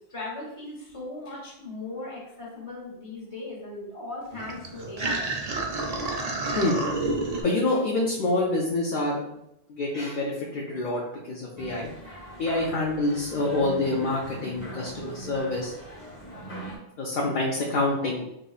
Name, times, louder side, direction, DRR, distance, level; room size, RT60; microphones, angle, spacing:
voice 1, 0.1-5.3, left 2 dB, 35° left, -4 dB, 1.0 m, -38 dB
sound 1, 4.3-7.4, right 3 dB, 55° right, 0.5 m, -29 dB
voice 2, 7.4-9.4 9.7-11.9 12.4-15.7 17.0-18.3, left 2 dB, 60° left, -3 dB, 0.7 m, -27 dB
sound 2, 11.6-16.8, right 2 dB, 10° left, 1.0 m, -40 dB
4.9 x 2.0 x 2.3 m, 0.83 s
omnidirectional pair, 1.1 m